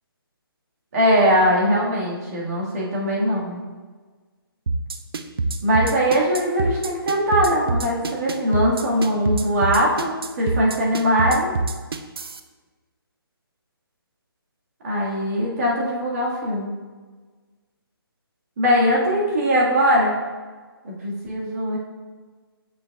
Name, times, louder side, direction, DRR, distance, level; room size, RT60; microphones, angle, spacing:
voice 1, 0.9-3.6 5.6-11.5 14.8-16.7 18.6-20.2 20.8-21.8, equal, 40° right, -4 dB, 1.8 m, -21 dB
sound 1, 4.7-12.4, right 3 dB, 70° right, 0.5 m, -25 dB
7.3 x 5.4 x 2.4 m, 1.4 s
hypercardioid pair, 155°, 13 cm